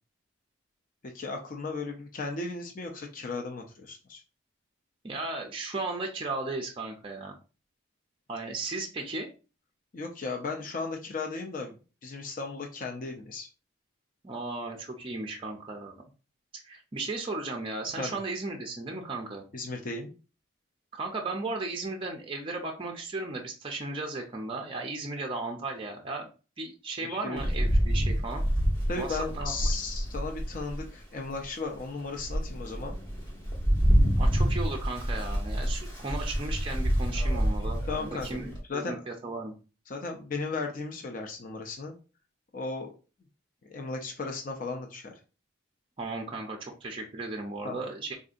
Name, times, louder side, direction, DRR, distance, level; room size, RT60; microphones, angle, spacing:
voice 1, 1.1-4.2 9.9-11.8 12.0-13.5 17.9-18.2 19.5-20.1 27.0-27.7 28.9-32.9 37.9-38.3 38.7-39.0 39.9-41.9 42.5-42.9 43.6-45.1 47.6-47.8, left 3 dB, 40° left, 2 dB, 0.5 m, -35 dB
voice 2, 5.0-7.3 8.3-9.3 14.2-16.0 16.6-19.4 20.9-26.3 26.6-28.4 29.0-29.5 34.1-39.5 46.0-48.2, right 3 dB, 25° right, 2 dB, 0.4 m, -35 dB
Rain, 27.4-30.9 31.4-31.5 32.0-38.6, equal, 20° left, 0.8 m, -27 dB
3.7 x 2.6 x 2.5 m, 0.33 s
head